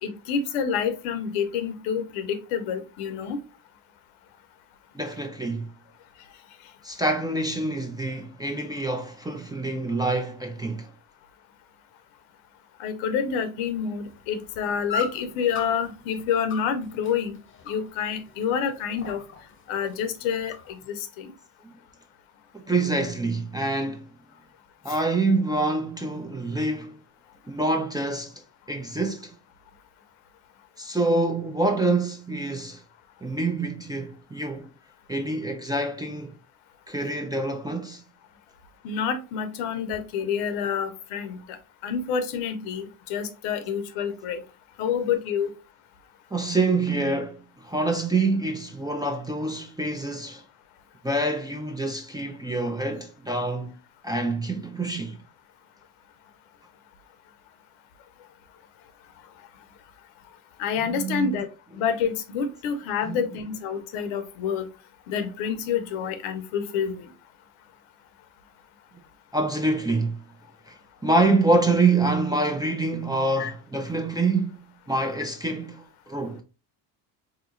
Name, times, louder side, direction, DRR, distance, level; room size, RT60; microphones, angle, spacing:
voice 1, 0.0-3.4 12.8-17.4 17.7-19.2 19.7-21.3 24.9-25.0 38.8-44.4 44.8-45.5 60.6-64.7 65.1-67.1 73.4-73.5, left 7 dB, 75° left, 0.8 m, -28 dB
voice 2, 4.9-5.7 6.8-10.9 21.6-21.7 22.5-24.1 24.8-27.0 27.5-29.3 30.8-32.8 33.2-34.7 35.1-36.4 36.9-38.0 46.3-50.4 51.0-53.7 54.0-55.2 60.8-61.4 63.1-63.2 69.3-70.2 70.7-70.8 71.0-76.4, right 2 dB, 10° right, 0.4 m, -26 dB
sound 1, 14.0-20.9, left 5 dB, 25° left, 0.8 m, -39 dB
3.6 x 2.9 x 2.5 m
supercardioid pair, 70°, 48 cm